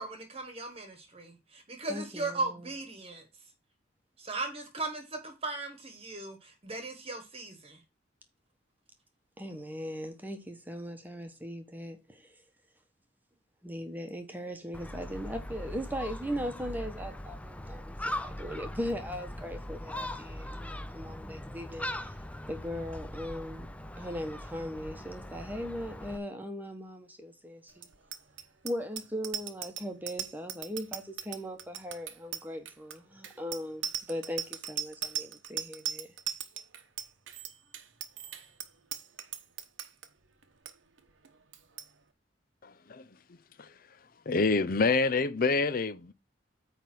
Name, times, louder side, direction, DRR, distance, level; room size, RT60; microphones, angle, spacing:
voice 1, 0.0-3.3 4.2-7.8, right 3 dB, 30° right, 1.3 m, -37 dB
voice 2, 1.9-2.6 9.4-12.4 13.6-22.2 22.5-27.9 28.6-36.1, equal, 10° right, 1.1 m, -39 dB
Gull seagull, 14.7-26.2, left 1 dB, 5° left, 0.5 m, -40 dB
Bicycle bell, 27.8-40.1 40.4-40.7 41.0-41.3 41.5-41.9, right 10 dB, 90° right, 1.0 m, -38 dB
voice 3, 42.6-43.7 44.3-46.1, left 4 dB, 50° left, 0.6 m, -28 dB
9.1 x 3.4 x 6.0 m
head